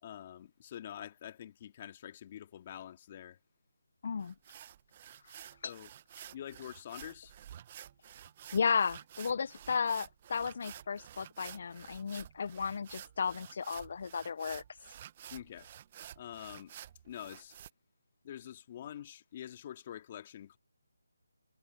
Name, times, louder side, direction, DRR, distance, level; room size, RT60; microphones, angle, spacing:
voice 1, 0.0-3.4 5.6-5.9 6.3-7.3 15.3-15.7 16.2-16.7 17.0-17.6 18.2-20.6, left 10 dB, 30° left, 2.1 m, -46 dB
voice 2, 4.0-4.3 5.6-5.7 8.5-14.6, left 6 dB, 45° left, 0.4 m, -34 dB
sound 1, 4.2-17.7, right 10 dB, 25° right, 0.9 m, -51 dB
figure-of-eight pair, 160°, 0 cm